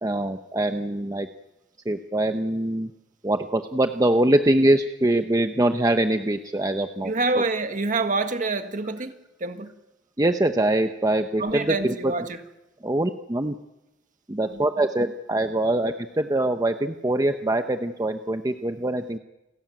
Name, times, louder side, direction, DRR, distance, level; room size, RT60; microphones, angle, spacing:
voice 1, 0.0-1.3 1.9-2.9 3.2-7.1 10.2-11.7 12.8-13.5 14.3-19.2, right 1 dB, 20° right, 0.8 m, -23 dB
voice 2, 7.0-9.7 11.4-12.4 14.4-14.7, right 3 dB, 45° right, 1.7 m, -27 dB
29.5 x 13.5 x 9.3 m
head